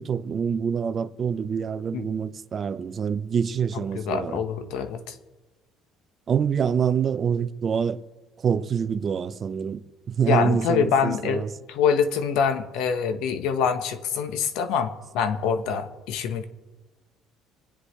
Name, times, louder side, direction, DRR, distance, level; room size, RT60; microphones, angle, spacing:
voice 1, 0.0-4.4 6.3-8.0 8.4-11.5, right 7 dB, 40° right, 0.6 m, -26 dB
voice 2, 3.7-5.1 10.3-16.4, left 6 dB, 80° left, 1.2 m, -25 dB
26.5 x 10.0 x 3.3 m
cardioid pair, 115°, 0 cm